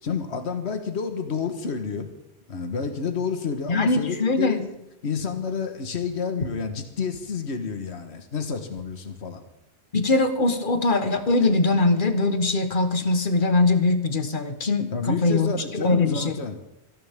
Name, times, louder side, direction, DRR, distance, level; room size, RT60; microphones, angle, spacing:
voice 1, 0.0-2.1 2.5-4.7 5.0-9.4 14.9-16.6, left 5 dB, 70° left, 6 dB, 1.7 m, -29 dB
voice 2, 3.7-4.6 9.9-16.3, left 3 dB, 45° left, 8 dB, 1.5 m, -22 dB
29.0 x 11.0 x 3.6 m, 0.90 s
omnidirectional pair, 1.2 m